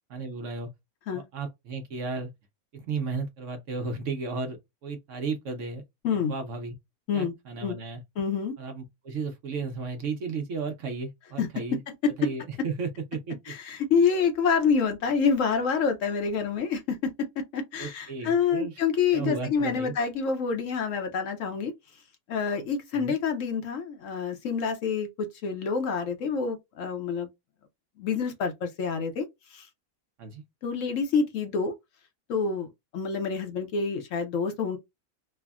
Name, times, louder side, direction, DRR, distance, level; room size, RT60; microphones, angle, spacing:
voice 1, 0.1-0.7 1.1-2.3 2.7-4.6 4.8-5.8 6.1-6.7 7.1-8.0 8.6-11.8 12.2-13.3 17.8-18.7 19.1-19.9 22.9-23.2 30.2-30.4, right 4 dB, 65° right, 0.9 m, -34 dB
voice 2, 8.2-8.5 11.4-11.5 12.0-12.1 13.5-21.7 22.3-27.3 28.0-29.7 30.6-31.7 32.3-34.8, left 5 dB, 65° left, 0.9 m, -27 dB
3.3 x 2.1 x 2.3 m
omnidirectional pair, 1.6 m